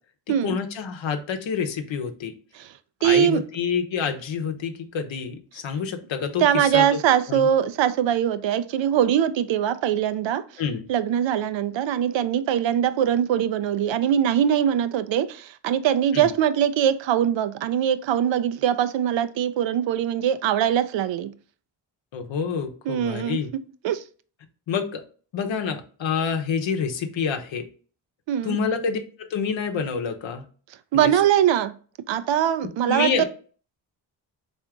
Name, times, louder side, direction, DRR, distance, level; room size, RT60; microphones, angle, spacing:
voice 1, 0.3-2.3 3.0-7.0 7.3-7.5 10.6-10.8 16.1-16.3 22.1-23.5 24.7-25.0 25.3-27.6 28.4-30.4 30.9-31.1 32.9-33.2, left 6 dB, 65° left, 0.8 m, -27 dB
voice 2, 3.0-3.4 6.4-10.4 10.9-21.3 22.9-23.4 23.8-24.0 28.3-28.6 30.9-31.7 32.1-33.2, right 10 dB, 65° right, 0.5 m, -22 dB
3.4 x 2.6 x 3.5 m
supercardioid pair, 45°, 49 cm